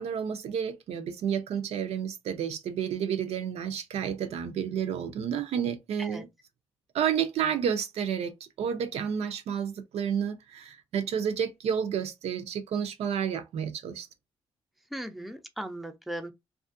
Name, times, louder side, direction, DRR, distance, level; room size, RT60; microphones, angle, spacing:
voice 1, 0.0-6.3 6.9-8.3 8.6-14.1, right 8 dB, 85° right, 0.5 m, -30 dB
voice 2, 14.9-16.3, right 1 dB, ahead, 0.4 m, -37 dB
2.7 x 2.4 x 2.5 m
cardioid pair, 125°, 10 cm